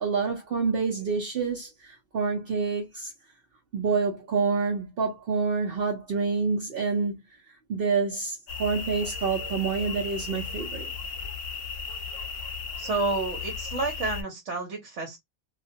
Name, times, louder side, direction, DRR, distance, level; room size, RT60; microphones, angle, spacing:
voice 1, 0.0-3.1 3.7-7.2 7.7-10.9, right 5 dB, 60° right, 0.8 m, -27 dB
sound 1, 8.5-14.2, left 5 dB, 65° left, 0.8 m, -35 dB
voice 2, 12.8-15.2, right 3 dB, 85° right, 1.2 m, -30 dB
2.4 x 2.2 x 2.6 m
omnidirectional pair, 1.2 m